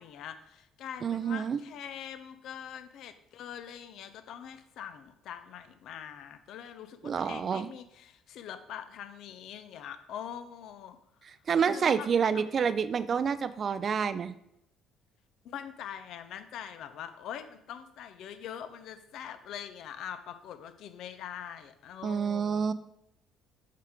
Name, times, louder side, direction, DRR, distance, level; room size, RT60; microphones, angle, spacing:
voice 1, 0.0-11.3 11.6-12.7 15.4-22.7, left 9 dB, 60° left, 10 dB, 0.6 m, -43 dB
voice 2, 1.0-1.6 7.0-7.7 11.5-14.3 22.0-22.7, right 6 dB, 45° right, 14 dB, 0.5 m, -28 dB
7.5 x 5.7 x 3.7 m, 0.78 s
figure-of-eight pair, 50°, 0 cm